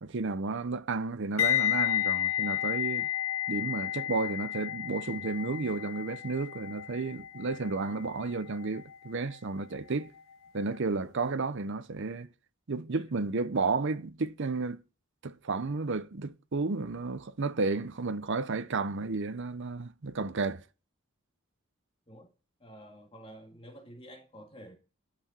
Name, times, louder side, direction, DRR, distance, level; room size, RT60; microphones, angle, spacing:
voice 1, 0.0-3.1 3.5-10.1 10.5-12.3 12.7-14.8 15.2-20.6, right 3 dB, 55° right, 0.7 m, -32 dB
sound 1, 1.4-10.3 10.6-10.9, left 12 dB, 65° left, 0.9 m, -32 dB
voice 2, 13.0-13.3 22.1-22.3 22.6-24.7, equal, 25° left, 2.0 m, -50 dB
11.5 x 5.9 x 8.1 m
head